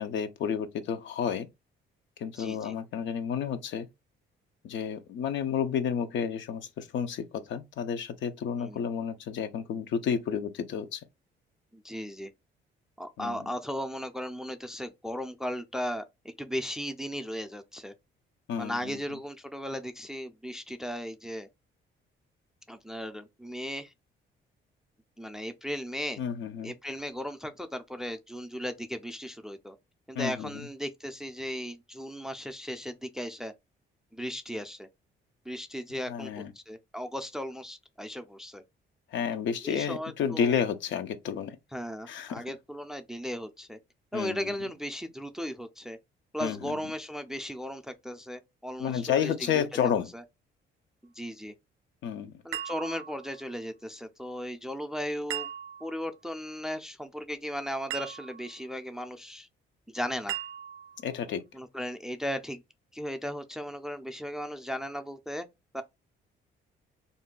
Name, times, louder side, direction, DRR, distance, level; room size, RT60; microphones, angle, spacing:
voice 1, 0.0-1.5 2.2-3.9 4.6-11.0 13.2-13.4 18.5-19.0 26.2-26.7 30.2-30.5 36.1-36.5 39.1-41.6 42.1-42.4 44.1-44.4 46.4-46.7 48.8-50.1 52.0-52.3 61.0-61.4, left 7 dB, 70° left, 0.5 m, -31 dB
voice 2, 2.3-2.7 8.5-8.8 11.7-12.3 13.0-17.9 18.6-21.5 22.7-23.9 25.2-26.2 26.6-29.8 30.1-33.5 34.1-34.9 35.5-38.6 39.6-40.6 41.7-43.8 44.1-46.0 46.3-50.2 51.0-51.5 52.4-55.5 55.8-59.5 59.9-60.4 61.5-62.6 62.9-65.5 65.7-65.8, equal, 5° right, 0.4 m, -36 dB
sound 1, 52.5-53.5 55.3-56.1 57.9-58.6 60.3-61.1, right 11 dB, 75° right, 0.4 m, -38 dB
2.5 x 2.2 x 3.7 m
cardioid pair, 90°, 20 cm